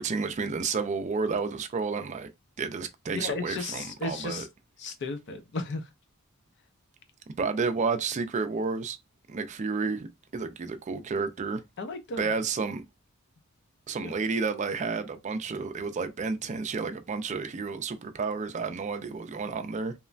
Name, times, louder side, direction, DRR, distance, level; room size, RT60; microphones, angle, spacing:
voice 1, 0.0-2.3 2.6-4.5 7.4-9.0 9.3-11.6 12.2-12.8 13.9-19.9, right 4 dB, 35° right, 0.4 m, -31 dB
voice 2, 3.1-4.5 4.8-5.8 11.8-12.3 14.0-14.1, left 3 dB, 55° left, 0.5 m, -34 dB
3.0 x 2.1 x 2.4 m
head